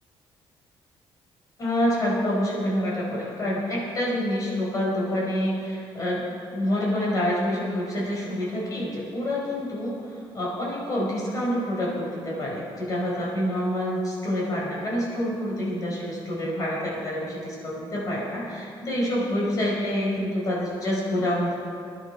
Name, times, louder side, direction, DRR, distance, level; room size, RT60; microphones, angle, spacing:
voice 1, 1.6-21.6, left 1 dB, 35° left, -4 dB, 5.0 m, -27 dB
19.5 x 11.0 x 5.6 m, 2.3 s
cardioid pair, 175°, 10 cm